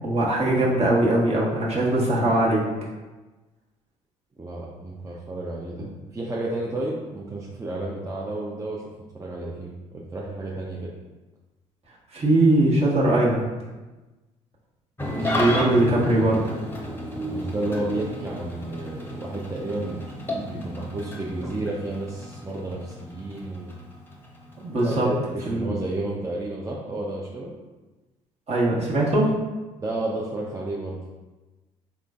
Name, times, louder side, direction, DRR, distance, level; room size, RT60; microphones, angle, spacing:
voice 1, 0.0-2.6 12.1-13.5 15.1-16.4 24.6-25.1 25.5-25.7 28.5-29.3, right 1 dB, 40° right, -5 dB, 1.3 m, -21 dB
voice 2, 4.4-5.9 6.1-8.8 9.1-10.9 15.2-15.6 17.3-20.1 20.5-23.7 24.8-27.5 29.8-31.0, right 2 dB, 20° right, -4 dB, 0.6 m, -31 dB
Engine starting / Idling, 15.0-25.6, left 1 dB, 15° left, 0.8 m, -33 dB
3.7 x 3.2 x 2.4 m, 1.2 s
hypercardioid pair, 60°, 16 cm